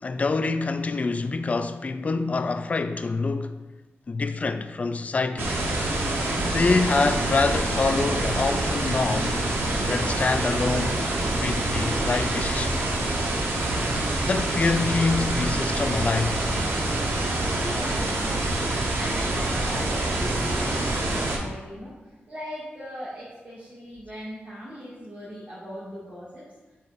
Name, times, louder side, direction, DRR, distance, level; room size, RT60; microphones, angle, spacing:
voice 1, 0.0-3.6 4.1-5.6 6.3-9.4 9.8-11.1 11.4-12.8 14.3-16.4, left 3 dB, 35° left, 0.3 m, -26 dB
sound 1, 5.4-21.4, right 2 dB, 85° right, 1.1 m, -26 dB
voice 2, 17.5-26.4, equal, 50° right, 2.1 m, -39 dB
7.4 x 5.8 x 2.6 m
wide cardioid pair, 135°, 4 cm